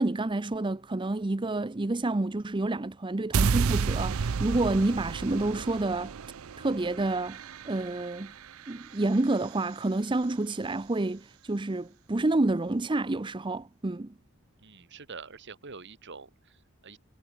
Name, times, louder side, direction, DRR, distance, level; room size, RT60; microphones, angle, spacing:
voice 1, 0.0-6.1 6.6-8.3 8.7-14.1, right 2 dB, 20° right, 0.6 m, -29 dB
sound 1, 3.3-9.5, right 5 dB, 70° right, 0.5 m, -31 dB
voice 2, 14.6-17.0, right 4 dB, 55° right, 1.6 m, -46 dB
head